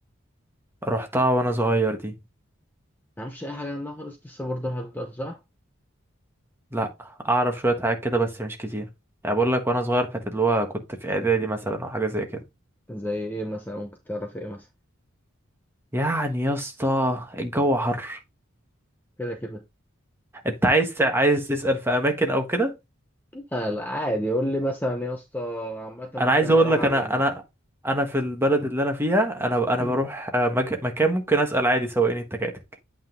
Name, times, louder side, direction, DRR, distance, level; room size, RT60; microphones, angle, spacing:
voice 1, 0.8-2.1 6.7-8.9 9.2-12.4 15.9-18.2 20.4-22.7 26.2-27.4 27.8-32.5, right 1 dB, 10° right, 1.3 m, -23 dB
voice 2, 3.2-5.4 12.9-14.7 19.2-19.6 23.3-27.2 29.8-30.0, equal, 10° left, 0.7 m, -31 dB
8.6 x 3.7 x 3.7 m
head